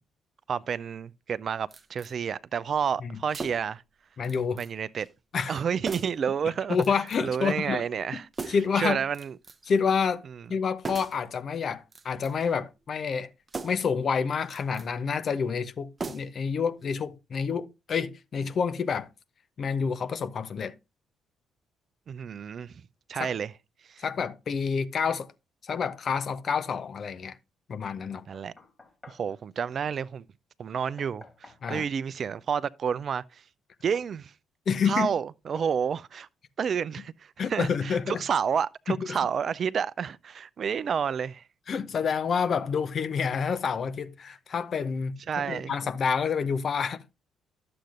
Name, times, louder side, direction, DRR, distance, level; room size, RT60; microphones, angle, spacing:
voice 1, 0.5-3.8 4.6-5.1 5.5-6.8 7.2-9.3 22.1-22.7 23.1-23.5 23.9-24.0 28.3-28.5 29.1-30.2 30.6-33.4 33.8-34.3 34.9-36.3 36.6-41.4 45.3-45.7, right 7 dB, 50° right, 0.4 m, -30 dB
sound 1, 1.7-2.1 3.3-3.8 4.2-4.7 5.0-5.1 5.9-6.3 6.8-7.3 8.3-8.8 9.1-9.7 10.8-11.3 11.8-12.5 13.5-13.9 14.4-14.9 16.0-16.5 16.8-16.9, right 4 dB, 30° right, 0.8 m, -39 dB
voice 2, 4.2-4.6 5.3-5.6 6.7-7.8 8.5-9.0 9.6-10.2 10.5-13.3 13.6-19.1 19.6-20.7 23.1-23.3 24.0-25.3 25.6-27.4 27.7-28.2 31.6-31.9 34.7-35.1 37.4-38.2 38.9-39.2 41.7-47.0, left 6 dB, 50° left, 0.7 m, -28 dB
Knock, 28.1-29.3 30.7-31.9 33.9-34.1 34.7-34.9 35.6-35.8, left 3 dB, 30° left, 2.3 m, -49 dB
11.5 x 7.7 x 2.4 m
hypercardioid pair, 45°, 0 cm